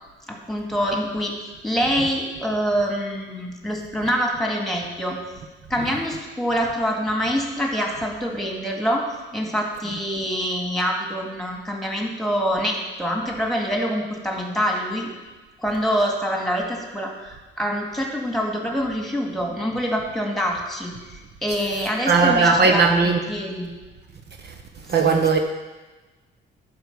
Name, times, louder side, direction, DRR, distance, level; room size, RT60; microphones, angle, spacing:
voice 1, 0.3-1.3 1.6-5.2 5.7-15.1 15.6-23.7 25.0-25.2, equal, ahead, 2.2 m, -25 dB
voice 2, 22.1-23.2 24.9-25.4, right 4 dB, 55° right, 1.0 m, -17 dB
11.0 x 5.1 x 6.8 m
cardioid pair, 90°, 20 cm